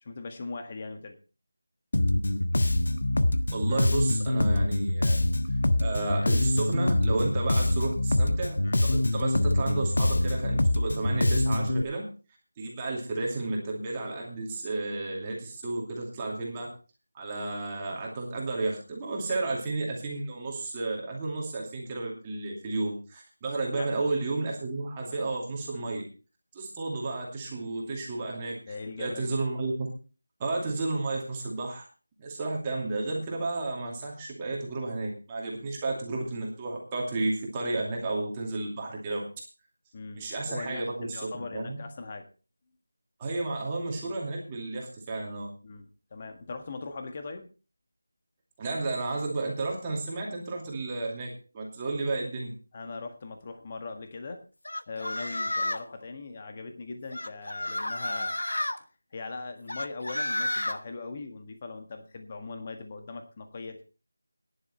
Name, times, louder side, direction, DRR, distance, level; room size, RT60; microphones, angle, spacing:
voice 1, 0.0-1.2 23.7-23.9 25.7-25.9 28.7-29.4 39.9-42.3 45.6-47.5 52.7-54.4 54.9-58.3 59.1-63.8, left 3 dB, 25° left, 6 dB, 1.6 m, -40 dB
Bass guitar, 1.9-11.8, left 1 dB, 60° left, 1.3 m, -25 dB
voice 2, 3.5-5.2 5.5-12.1 12.6-16.7 17.1-26.0 26.5-29.9 30.4-31.8 32.2-39.3 40.1-41.8 43.2-45.5 48.6-52.5, right 2 dB, 15° right, -2 dB, 2.6 m, -32 dB
sound 1, 54.7-55.9 57.1-58.8 59.7-60.8, left 1 dB, 80° left, 1.3 m, -31 dB
14.5 x 10.5 x 4.5 m, 0.35 s
figure-of-eight pair, 175°, 0 cm